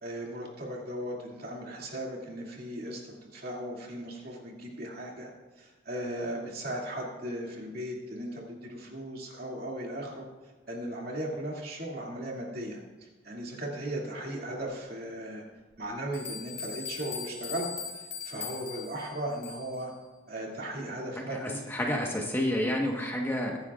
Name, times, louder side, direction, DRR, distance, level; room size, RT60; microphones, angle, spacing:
voice 1, 0.0-5.3 5.6-10.3 10.7-15.4 15.8-17.7 18.2-19.9 20.3-21.6, right 1 dB, 50° right, -2 dB, 2.5 m, -37 dB
sound 1, 15.7-15.8 16.1-19.8, left 6 dB, 70° left, 2.7 m, -40 dB
voice 2, 21.2-23.6, left 1 dB, 10° left, -1 dB, 1.3 m, -30 dB
22.0 x 10.5 x 2.5 m, 1.2 s
head